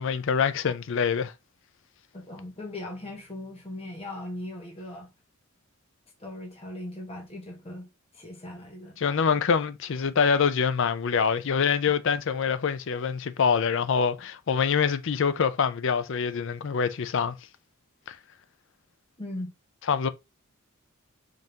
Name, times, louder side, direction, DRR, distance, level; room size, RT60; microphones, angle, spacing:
voice 1, 0.0-1.3 9.0-17.4 18.1-18.2 19.9-20.1, left 6 dB, 60° left, 0.4 m, -25 dB
voice 2, 2.1-5.1 6.2-7.9 8.1-9.0 19.2-19.5, left 1 dB, 30° left, 1.2 m, -39 dB
5.2 x 2.6 x 2.8 m
head